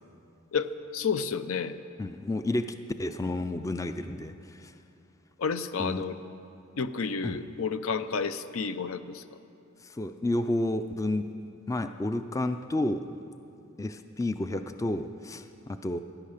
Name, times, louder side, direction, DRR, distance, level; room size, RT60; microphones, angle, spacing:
voice 1, 0.5-1.8 5.4-6.2 6.8-9.4, left 5 dB, 75° left, 12 dB, 0.6 m, -31 dB
voice 2, 2.0-2.6 3.0-4.7 5.8-6.0 7.2-7.4 9.8-11.2 11.7-13.0 13.8-16.0, left 1 dB, 15° left, 9 dB, 0.4 m, -31 dB
16.0 x 11.0 x 6.6 m, 2.7 s
head